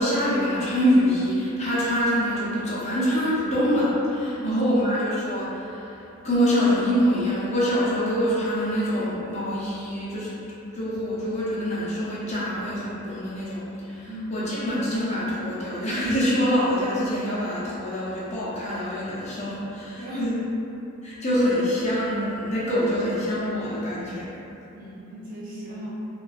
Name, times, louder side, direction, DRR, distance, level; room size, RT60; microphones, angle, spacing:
voice 1, 0.0-6.0 6.2-10.3 10.7-20.3 21.0-24.3, equal, 30° left, -9 dB, 0.5 m, -25 dB
voice 2, 4.4-4.8 14.1-14.3 20.0-20.4 24.7-25.9, right 2 dB, 40° right, -10 dB, 0.6 m, -33 dB
2.4 x 2.2 x 2.3 m, 2.9 s
head